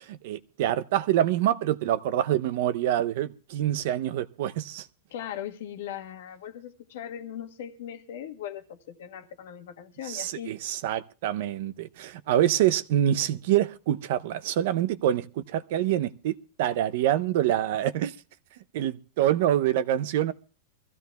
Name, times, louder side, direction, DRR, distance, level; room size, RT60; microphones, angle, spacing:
voice 1, 0.0-4.9 10.1-18.1 18.7-20.3, right 11 dB, 55° right, 0.6 m, -26 dB
voice 2, 5.1-10.5, left 10 dB, 70° left, 1.3 m, -39 dB
24.5 x 15.0 x 2.3 m
supercardioid pair, 155°, 0 cm